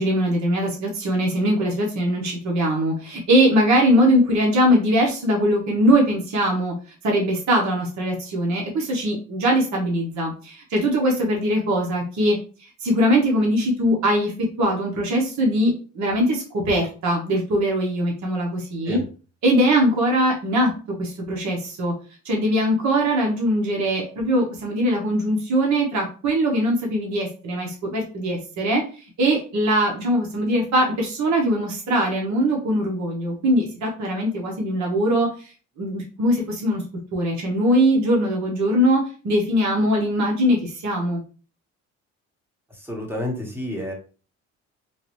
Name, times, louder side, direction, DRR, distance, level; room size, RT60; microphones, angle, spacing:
voice 1, 0.0-6.7 7.0-12.4 12.8-14.3 14.6-19.0 19.4-20.7 21.0-21.9 22.2-28.8 29.2-35.5 35.8-36.8 37.1-41.2, equal, 70° right, -1 dB, 1.3 m, -21 dB
voice 2, 42.8-43.9, equal, 5° right, 0 dB, 1.4 m, -29 dB
3.8 x 2.6 x 3.1 m, 0.37 s
cardioid pair, 90°, 30 cm